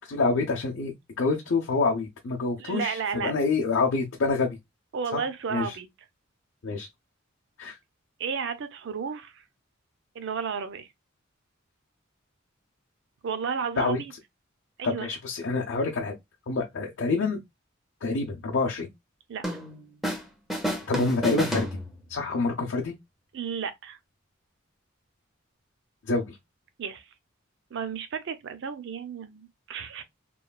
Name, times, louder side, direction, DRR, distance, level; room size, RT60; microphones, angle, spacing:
voice 1, 0.1-4.6 5.1-5.8 6.6-6.9 7.6-7.8 13.8-14.0 14.8-16.1 16.5-17.4 18.0-18.9 20.9-21.8 22.1-22.9 26.1-26.4, left 3 dB, 60° left, 0.5 m, -27 dB
voice 2, 2.6-3.3 4.9-5.9 8.2-9.4 10.1-10.9 13.2-14.1 14.8-15.1 19.3-19.4 23.3-24.0 26.8-27.1 27.7-30.0, right 6 dB, 60° right, 0.4 m, -32 dB
sound 1, 19.4-20.2 20.5-22.3, equal, ahead, 0.5 m, -31 dB
3.1 x 2.2 x 2.2 m
head